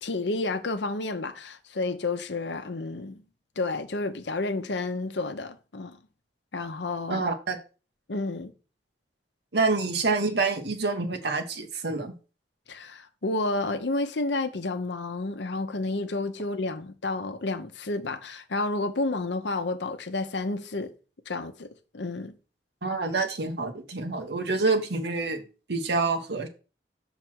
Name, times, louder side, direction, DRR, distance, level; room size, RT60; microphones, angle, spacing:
voice 1, 0.0-3.2 3.6-6.0 6.5-7.3 8.1-8.5 12.7-20.9 21.3-21.7 21.9-22.4, left 2 dB, 80° left, 0.8 m, -30 dB
voice 2, 7.1-7.6 9.5-12.1 22.8-25.4 25.7-26.5, right 3 dB, 65° right, 1.2 m, -27 dB
6.0 x 4.0 x 6.2 m
head